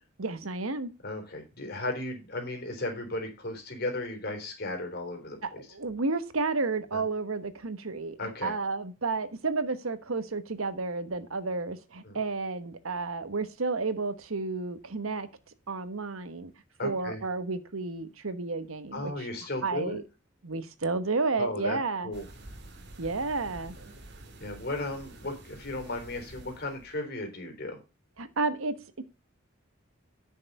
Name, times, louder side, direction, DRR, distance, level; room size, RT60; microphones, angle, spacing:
voice 1, 0.2-0.9 5.4-15.3 15.7-16.5 16.8-19.3 19.6-20.0 20.4-22.1 23.0-23.8 28.2-29.0, right 3 dB, 85° right, 11 dB, 1.3 m, -31 dB
voice 2, 1.0-5.7 6.9-7.0 8.2-8.5 12.0-12.2 16.8-17.2 18.9-20.0 21.3-21.8 22.0-22.3 24.4-27.8, left 2 dB, 50° left, 4 dB, 3.7 m, -35 dB
sound 1, 22.1-26.9, right 1 dB, 55° right, 2.2 m, -48 dB
9.7 x 6.7 x 5.3 m, 0.29 s
head